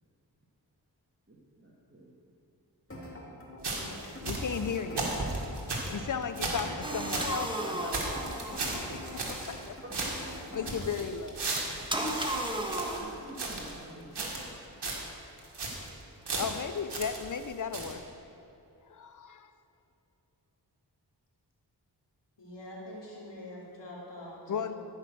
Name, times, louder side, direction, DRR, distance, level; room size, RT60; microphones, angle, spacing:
voice 1, 1.3-2.1 2.9-3.4 3.7-4.3 5.8-6.1 10.4-11.0 12.9-14.5, right 1 dB, 30° right, -6 dB, 2.0 m, -50 dB
sound 1, 2.9-10.9, left 1 dB, 30° left, 2.7 m, -45 dB
sound 2, 3.6-7.4 7.6-7.7 7.9-9.7 9.9-13.8 14.1-14.6 14.8-15.1 15.4-15.9 16.3-17.5 17.7-17.9, right 2 dB, 70° right, 2.0 m, -35 dB
voice 2, 4.0-5.2 5.9-8.8 9.3-9.7 10.4-11.3 16.4-18.0 18.9-19.5 24.5-24.7, left 6 dB, 45° left, 10 dB, 0.7 m, -36 dB
sound 3, 6.8-9.3 11.9-13.0, right 1 dB, 10° right, 1.5 m, -34 dB
voice 3, 22.4-24.7, left 1 dB, 80° left, -5 dB, 2.7 m, -45 dB
13.5 x 5.7 x 6.3 m, 2.9 s
cardioid pair, 40°, 42 cm